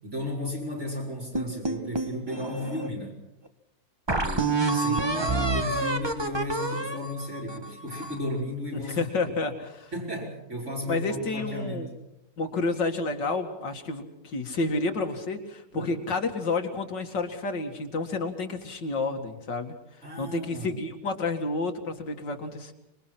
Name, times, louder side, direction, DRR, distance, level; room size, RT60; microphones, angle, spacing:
voice 1, 0.0-3.2 4.1-9.0 9.9-11.9 15.7-16.0 20.0-20.8, left 1 dB, 40° right, -4 dB, 5.3 m, -34 dB
sound 1, 1.3-2.9 3.5-3.6 4.1-8.3, right 3 dB, 15° right, 1.1 m, -28 dB
voice 2, 4.8-5.3 8.7-9.9 10.9-11.9 12.4-19.7 20.2-22.7, left 3 dB, 80° left, 5 dB, 2.8 m, -30 dB
26.0 x 22.5 x 6.0 m, 0.86 s
omnidirectional pair, 1.9 m